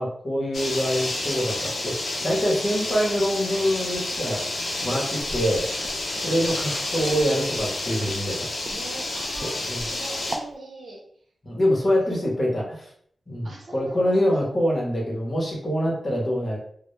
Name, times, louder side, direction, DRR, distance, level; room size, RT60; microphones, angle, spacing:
voice 1, 0.0-1.9 2.2-4.5 4.8-5.7 6.2-8.5 9.4-9.9 11.4-12.9 13.3-16.6, equal, 35° left, -3 dB, 0.8 m, -25 dB
sound 1, 0.5-10.4, left 2 dB, 60° left, 0.5 m, -30 dB
Walk footsteps, 5.2-10.5, right 1 dB, 35° right, 0.3 m, -39 dB
voice 2, 6.1-6.5 8.6-11.0 12.0-12.1 13.4-14.4, right 2 dB, 80° right, -1 dB, 0.6 m, -42 dB
2.1 x 2.0 x 3.0 m, 0.62 s
wide cardioid pair, 120°, 0 cm